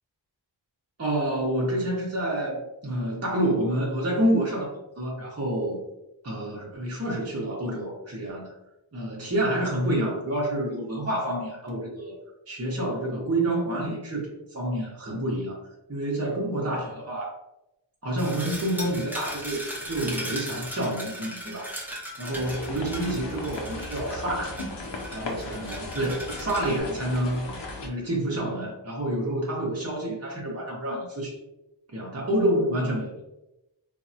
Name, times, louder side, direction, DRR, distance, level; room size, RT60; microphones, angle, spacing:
voice 1, 1.0-5.8 6.2-8.5 8.9-12.1 12.5-15.6 15.9-17.3 18.0-21.7 22.2-24.6 25.1-27.5 27.8-31.4 31.9-33.1, right 1 dB, 35° right, -3 dB, 0.7 m, -28 dB
sound 1, 18.2-26.8, equal, 5° right, 0.8 m, -38 dB
sound 2, 22.3-27.9, left 2 dB, 70° left, 0.7 m, -37 dB
3.3 x 2.0 x 2.7 m, 0.92 s
wide cardioid pair, 40°, 45 cm